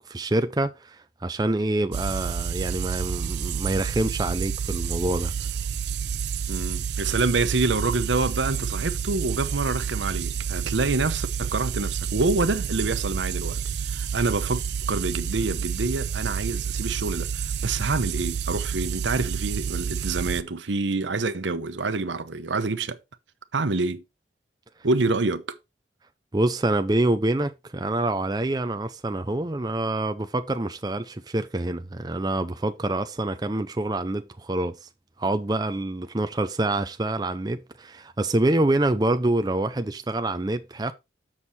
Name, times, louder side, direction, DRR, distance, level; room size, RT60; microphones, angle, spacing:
voice 1, 0.1-5.5 26.3-34.9 35.2-40.9, right 2 dB, 20° right, 0.5 m, -26 dB
sound 1, 1.9-20.4, right 7 dB, 70° right, 0.5 m, -29 dB
voice 2, 6.5-14.6 14.9-23.0 23.5-24.0 24.8-25.6, right 3 dB, 85° right, 0.9 m, -27 dB
7.4 x 6.2 x 4.1 m
head